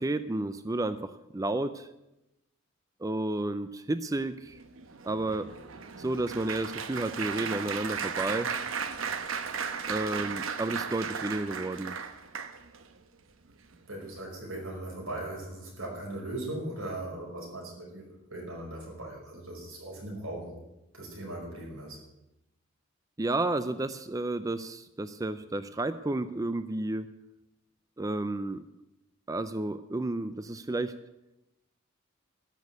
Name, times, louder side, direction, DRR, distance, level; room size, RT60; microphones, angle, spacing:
voice 1, 0.0-1.9 3.0-4.6 5.0-5.5 6.0-8.5 9.9-11.9 23.2-27.1 28.0-28.6 29.3-30.9, right 2 dB, 15° right, 12 dB, 0.4 m, -31 dB
Applause, 4.5-12.9 13.5-13.7 14.0-14.2, right 6 dB, 75° right, 1.0 m, -36 dB
voice 2, 13.9-20.6 20.9-22.0, right 1 dB, 90° right, -1 dB, 5.6 m, -39 dB
13.5 x 6.3 x 9.4 m, 0.92 s
head